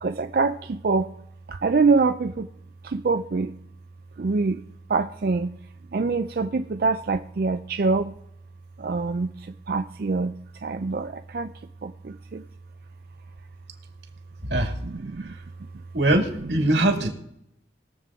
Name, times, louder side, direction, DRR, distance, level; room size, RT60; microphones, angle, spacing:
voice 1, 0.0-1.1 1.5-2.5 2.8-3.5 4.2-4.6 4.9-5.5 5.9-8.1 8.8-9.3 9.7-10.3 10.6-11.5 11.8-12.4 14.8-15.3, right 4 dB, 55° right, 7 dB, 0.4 m, -25 dB
voice 2, 15.9-17.1, right 1 dB, 90° right, 3 dB, 2.2 m, -22 dB
21.0 x 7.5 x 3.6 m, 0.78 s
head